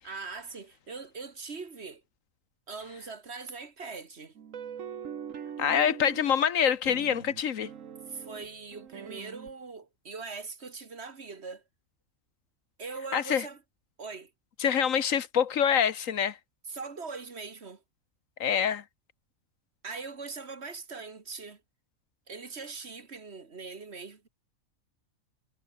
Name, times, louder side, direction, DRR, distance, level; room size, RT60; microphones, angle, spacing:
voice 1, 0.0-2.0 2.7-4.3 8.1-11.6 12.8-13.6 14.0-14.3 16.7-17.8 19.8-21.6 22.3-24.3, right 4 dB, 50° right, 2.0 m, -41 dB
sound 1, 4.4-6.4 6.8-9.5, right 8 dB, 65° right, 1.5 m, -42 dB
voice 2, 5.6-7.7 13.1-13.5 14.6-16.4 18.4-18.8, left 8 dB, 70° left, 1.4 m, -25 dB
omnidirectional pair, 1.5 m